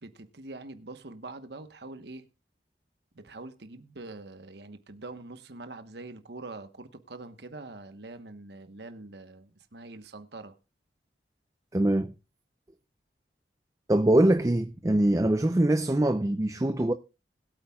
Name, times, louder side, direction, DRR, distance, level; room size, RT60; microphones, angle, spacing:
voice 1, 0.0-2.2 3.1-10.6, right 2 dB, 70° right, 1.1 m, -44 dB
voice 2, 11.7-12.1 13.9-16.9, right 1 dB, 20° right, 0.5 m, -23 dB
21.0 x 8.5 x 2.3 m
head